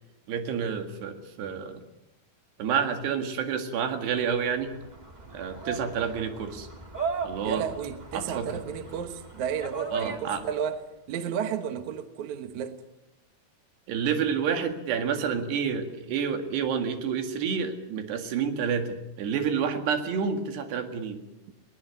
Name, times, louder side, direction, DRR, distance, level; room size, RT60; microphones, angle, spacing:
voice 1, 0.3-1.8 2.6-4.7 5.3-6.7 7.2-7.6 8.1-8.6 9.9-10.4 13.9-21.2, right 7 dB, 75° right, 4.1 m, -29 dB
sound 1, 4.5-10.7, right 5 dB, 35° right, 0.6 m, -37 dB
voice 2, 7.4-10.8 11.1-12.8, right 8 dB, 60° right, 2.2 m, -32 dB
20.5 x 18.5 x 9.5 m
omnidirectional pair, 4.9 m